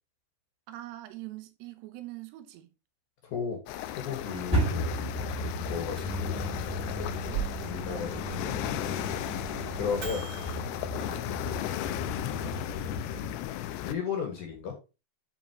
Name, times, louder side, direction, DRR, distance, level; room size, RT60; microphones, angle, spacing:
voice 1, 0.7-2.7 4.3-4.5 7.0-7.5 9.6-10.0, right 16 dB, 80° right, 2.8 m, -44 dB
voice 2, 3.2-3.6 4.0-5.1 5.4-6.4 7.6-9.0 9.7-10.3 10.9-11.3 11.6-13.0 13.8-14.7, left 6 dB, 55° left, 2.8 m, -36 dB
sound 1, 3.7-13.9, left 13 dB, 80° left, 2.6 m, -36 dB
sound 2, 4.5-13.3, right 1 dB, ahead, 2.3 m, -35 dB
Microwave oven, 5.7-10.5, right 4 dB, 40° right, 4.1 m, -40 dB
9.8 x 4.5 x 3.0 m
omnidirectional pair, 4.9 m